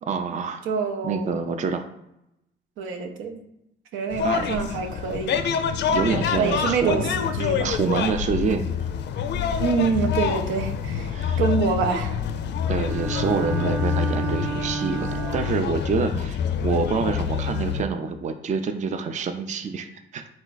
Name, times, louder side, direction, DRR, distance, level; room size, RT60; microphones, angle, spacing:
voice 1, 0.0-0.6 1.0-1.9 4.2-4.5 5.8-7.1 7.6-8.7 11.1-11.4 12.7-20.3, right 5 dB, 35° right, 7 dB, 0.4 m, -27 dB
voice 2, 0.7-1.4 2.8-3.4 3.9-5.4 6.4-7.7 9.6-12.1, right 5 dB, 85° right, 4 dB, 0.6 m, -26 dB
sound 1, 4.1-17.8, left 7 dB, 60° left, 0.4 m, -27 dB
Bowed string instrument, 12.8-15.8, right 4 dB, 10° right, 1.0 m, -31 dB
4.3 x 2.4 x 3.9 m, 0.85 s
cardioid pair, 90°, 20 cm